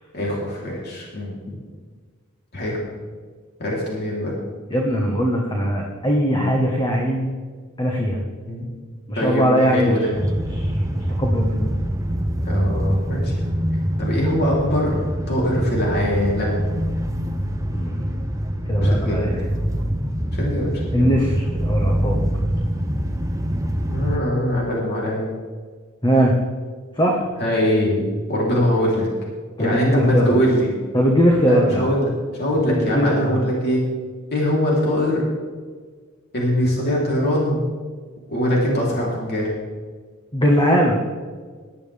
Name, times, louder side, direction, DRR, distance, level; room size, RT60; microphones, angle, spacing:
voice 1, 0.1-1.5 2.5-2.8 3.6-4.4 8.5-8.6 9.2-10.1 12.4-13.5 14.0-15.0 15.3-16.8 18.8-19.5 20.3-21.0 23.9-25.3 27.4-29.1 29.6-30.7 31.5-32.1 32.4-33.9 34.3-35.3 36.3-37.7 38.3-39.5, equal, 50° left, -4 dB, 3.7 m, -22 dB
voice 2, 4.7-7.3 7.8-8.2 9.1-9.9 10.5-11.6 17.7-18.4 18.7-19.5 20.9-22.2 26.0-26.4 27.0-27.2 29.6-30.4 30.9-31.8 32.7-33.5 40.3-41.0, equal, 20° left, -1 dB, 1.5 m, -20 dB
sound 1, 10.2-24.2, equal, 15° right, 0.9 m, -24 dB
18.5 x 12.0 x 3.6 m, 1.5 s
head